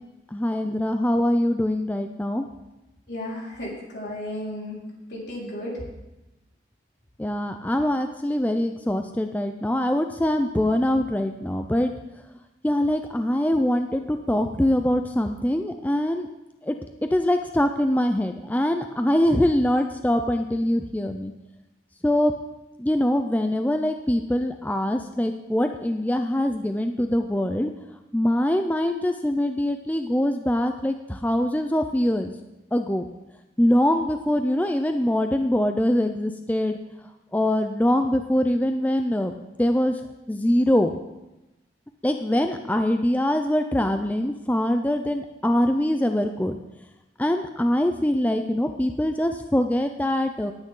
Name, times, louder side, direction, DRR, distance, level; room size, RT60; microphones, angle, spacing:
voice 1, 0.3-2.5 7.2-11.9 12.6-16.3 16.6-16.8 17.1-21.3 22.0-22.3 22.8-27.7 28.1-32.3 32.7-33.0 33.6-36.8 37.3-40.0 40.3-41.0 42.0-46.6 47.2-50.5, left 1 dB, 10° left, 6 dB, 0.4 m, -23 dB
voice 2, 3.1-4.8 5.1-5.8, left 1 dB, 70° left, -4 dB, 4.5 m, -33 dB
18.0 x 8.9 x 3.8 m, 0.98 s
head